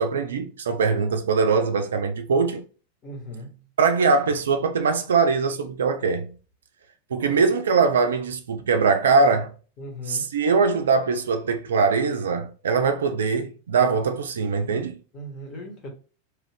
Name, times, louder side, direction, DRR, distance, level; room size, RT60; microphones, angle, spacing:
voice 1, 0.0-2.6 3.8-6.4 7.1-9.5 10.1-15.0, right 4 dB, 65° right, 0.4 m, -22 dB
voice 2, 3.0-3.5 7.2-7.4 9.8-10.4 15.1-15.9, left 1 dB, 30° left, 1.1 m, -38 dB
3.0 x 2.4 x 3.3 m
figure-of-eight pair, 90°, 0 cm